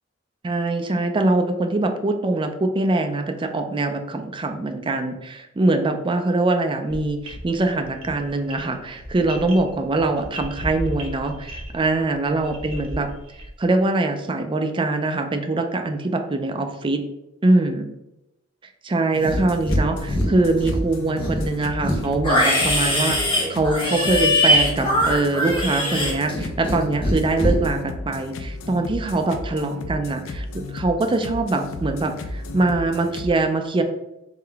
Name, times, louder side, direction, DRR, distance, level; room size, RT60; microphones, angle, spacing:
voice 1, 0.4-13.1 13.6-17.0 17.4-17.9 18.8-33.8, right 2 dB, 25° right, 5 dB, 0.4 m, -23 dB
sound 1, 6.9-13.6, equal, 80° right, 0.9 m, -36 dB
sound 2, 19.1-33.3, left 2 dB, 75° left, 0.4 m, -34 dB
Livestock farm animals working animals, 19.2-19.8 20.1-20.8 21.2-26.8 27.0-27.5, left 1 dB, 25° left, 1.1 m, -21 dB
3.7 x 3.3 x 3.4 m, 0.90 s
head